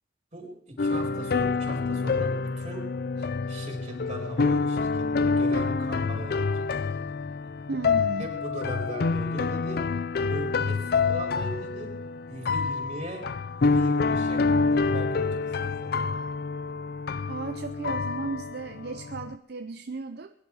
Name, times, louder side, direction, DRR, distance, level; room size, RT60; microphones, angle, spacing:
voice 1, 0.3-2.9 3.5-4.9 5.2-6.7 6.9-7.0 8.2-9.8 10.3-11.9 12.3-13.3 13.6-16.1, right 1 dB, 40° right, 0 dB, 4.6 m, -38 dB
sound 1, 0.8-19.3, left 4 dB, 60° left, 0.5 m, -27 dB
voice 2, 7.7-8.3 17.3-20.3, right 3 dB, 60° right, 8 dB, 0.6 m, -35 dB
21.0 x 11.0 x 4.8 m, 0.78 s
head